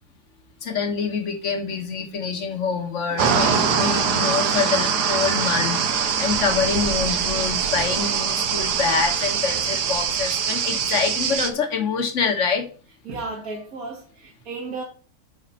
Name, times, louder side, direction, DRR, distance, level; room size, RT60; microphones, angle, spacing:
voice 1, 0.6-12.7, left 5 dB, 50° left, 1.6 m, -26 dB
sound 1, 3.2-11.5, right 6 dB, 75° right, 1.5 m, -23 dB
voice 2, 13.1-14.8, right 3 dB, 60° right, 2.0 m, -34 dB
9.4 x 4.1 x 5.6 m
omnidirectional pair, 1.8 m